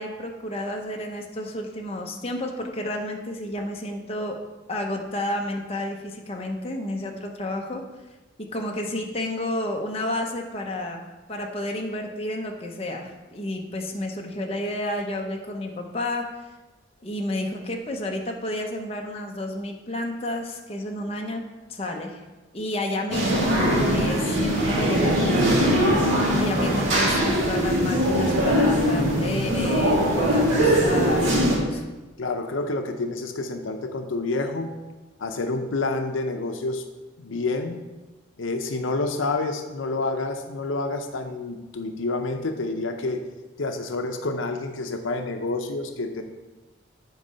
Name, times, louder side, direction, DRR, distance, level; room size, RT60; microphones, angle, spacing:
voice 1, 0.0-4.4 4.7-7.8 8.5-16.3 17.0-22.2 22.5-25.7 26.4-31.9, left 1 dB, 30° left, 1 dB, 0.8 m, -31 dB
sound 1, 23.1-31.6, equal, 80° right, 1.9 m, -21 dB
voice 2, 32.2-34.7 35.2-36.8 37.2-37.8 38.4-43.3 43.6-46.2, left 3 dB, 85° left, 6 dB, 0.6 m, -28 dB
7.9 x 4.7 x 5.5 m, 1.2 s
head